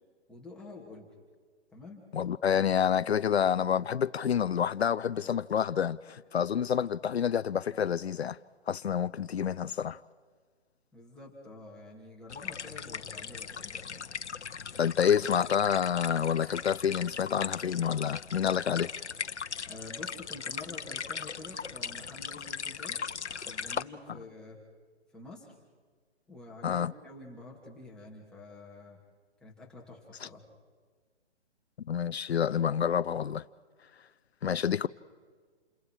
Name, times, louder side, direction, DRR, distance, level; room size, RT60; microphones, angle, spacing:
voice 1, 0.3-1.1 1.7-2.1 10.9-14.1 19.7-23.0 23.4-24.6 25.1-25.5 26.3-29.0 29.4-30.4, left 2 dB, ahead, 2.8 m, -48 dB
voice 2, 2.1-8.4 8.7-10.0 14.8-18.9 26.6-26.9 30.2-30.3 31.9-33.4 34.4-34.9, left 8 dB, 70° left, 0.7 m, -28 dB
sound 1, 12.3-23.8, left 6 dB, 85° left, 1.0 m, -38 dB
29.0 x 27.0 x 5.0 m
hypercardioid pair, 150°, 34 cm